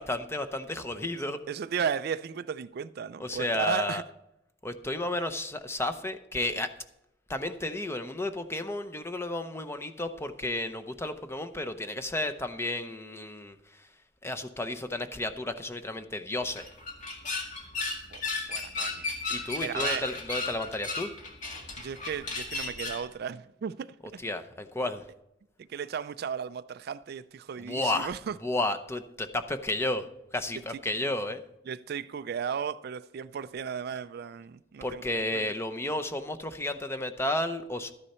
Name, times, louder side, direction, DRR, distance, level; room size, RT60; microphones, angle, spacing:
voice 1, 0.0-1.4 3.2-4.0 4.6-6.7 7.3-13.9 14.2-16.7 19.3-21.1 24.2-25.0 27.6-28.1 28.4-30.1 30.3-31.4 34.8-37.9, left 2 dB, 15° left, 0.7 m, -32 dB
voice 2, 1.5-4.0 18.1-18.2 18.5-19.1 19.6-20.1 21.8-24.0 25.7-28.4 31.7-35.0 35.3-35.4, right 7 dB, 55° right, 0.4 m, -35 dB
sound 1, 16.4-23.1, left 3 dB, 45° left, 1.9 m, -35 dB
12.5 x 9.8 x 4.3 m
head